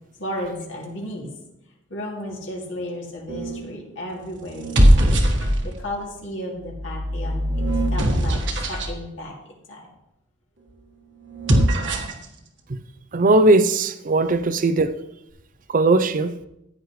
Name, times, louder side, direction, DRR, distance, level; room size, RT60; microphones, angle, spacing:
voice 1, 0.1-1.3 1.9-5.0 5.3-7.6 7.9-9.9, left 1 dB, 75° left, 2.5 m, -34 dB
sound 1, 3.3-3.7 4.5-5.9 6.6-8.9 11.3-12.3, equal, 70° right, 1.6 m, -20 dB
voice 2, 13.1-14.9 15.7-16.3, right 2 dB, 45° right, 0.5 m, -18 dB
15.0 x 9.6 x 3.2 m
head